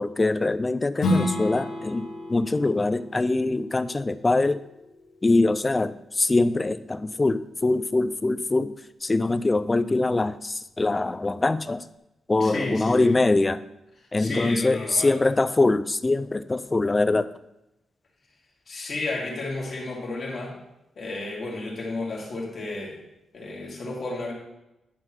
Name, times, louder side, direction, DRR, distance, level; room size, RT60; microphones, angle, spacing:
voice 1, 0.0-4.6 5.2-8.7 9.0-11.8 12.3-13.6 14.1-17.3, left 2 dB, 20° left, 14 dB, 0.3 m, -23 dB
Strum, 1.0-6.2, left 1 dB, 80° left, 1.6 m, -32 dB
voice 2, 12.4-13.1 14.2-15.1 18.7-20.6 21.0-23.0 23.3-24.3, left 2 dB, 45° left, -3 dB, 2.3 m, -32 dB
10.5 x 3.8 x 5.9 m, 0.90 s
wide cardioid pair, 145°, 0 cm